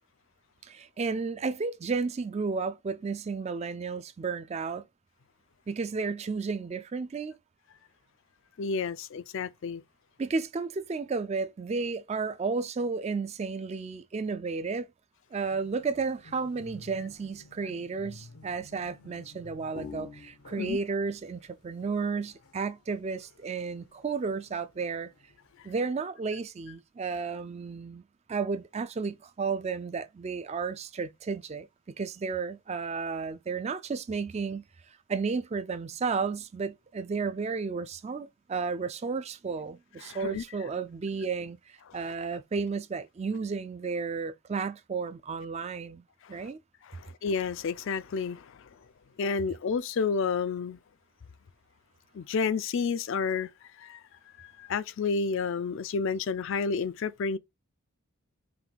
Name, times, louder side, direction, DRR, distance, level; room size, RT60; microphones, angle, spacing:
voice 1, 0.6-4.9 5.7-7.4 10.2-14.9 15.3-25.1 25.6-28.0 28.3-34.6 35.1-46.0 46.3-46.6, right 4 dB, 30° right, 0.3 m, -33 dB
voice 2, 8.6-9.8 20.6-20.8 40.0-40.4 46.2-46.5 46.8-48.7 49.2-50.8 52.1-53.5 53.8-54.0 54.4-57.4, left 5 dB, 55° left, 0.3 m, -30 dB
sound 1, 15.5-25.7, left 4 dB, 90° left, 0.9 m, -51 dB
5.8 x 2.2 x 3.3 m
head